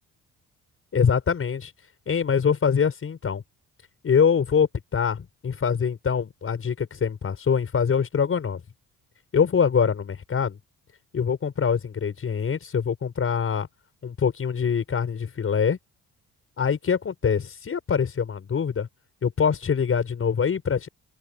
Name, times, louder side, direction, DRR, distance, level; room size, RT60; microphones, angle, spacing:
voice 1, 0.9-1.7 2.1-3.4 4.0-8.6 9.3-10.6 11.1-13.7 14.0-15.8 16.6-18.9 19.2-20.9, left 6 dB, 45° left, 6.0 m, -24 dB
open air
cardioid pair, 90°, 30 cm